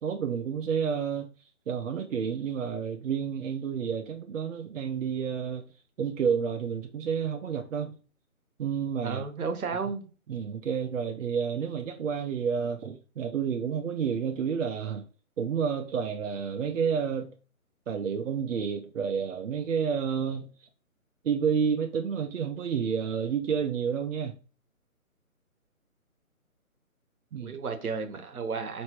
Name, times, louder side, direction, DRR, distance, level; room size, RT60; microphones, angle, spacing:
voice 1, 0.0-1.3 1.7-5.6 6.0-7.9 8.6-9.2 10.3-15.0 15.4-17.3 17.9-20.5 21.2-24.4 27.3-27.6, right 7 dB, 65° right, 0.5 m, -30 dB
voice 2, 9.0-10.1 27.4-28.8, right 5 dB, 85° right, 1.0 m, -33 dB
4.3 x 3.2 x 3.0 m
hypercardioid pair, 160°, 42 cm